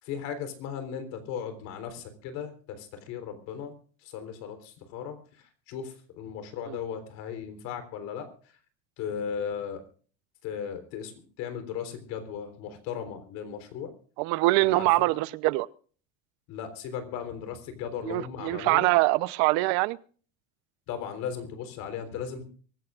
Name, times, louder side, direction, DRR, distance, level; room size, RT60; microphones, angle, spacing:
voice 1, 0.0-3.8 4.0-5.2 5.7-8.3 9.0-9.8 10.4-11.1 11.4-13.9 14.6-14.9 16.5-18.9 20.9-22.4, left 7 dB, 55° left, 3.8 m, -36 dB
voice 2, 14.2-15.7 18.0-20.0, right 20 dB, 60° right, 0.8 m, -24 dB
24.0 x 15.0 x 2.5 m
cardioid pair, 155°, 32 cm